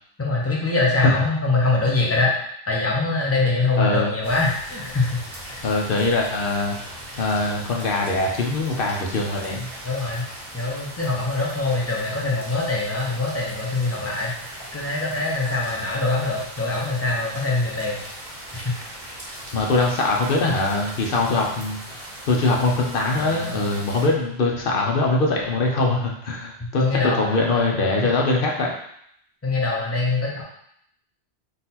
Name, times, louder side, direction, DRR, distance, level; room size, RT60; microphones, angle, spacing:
voice 1, 0.2-2.3 2.7-5.2 5.5-5.6 9.8-10.3 10.5-18.0 18.5-18.8 23.2-23.7 26.6-28.1 29.4-30.4, left 3 dB, 15° left, -3 dB, 0.8 m, -24 dB
voice 2, 3.8-4.2 5.6-6.8 7.2-9.7 19.5-21.8 22.3-26.8 27.1-28.7, left 2 dB, 60° left, -1 dB, 0.9 m, -22 dB
sound 1, 4.2-24.1, right 1 dB, 45° right, 0.9 m, -39 dB
4.0 x 2.6 x 4.1 m, 0.71 s
omnidirectional pair, 1.1 m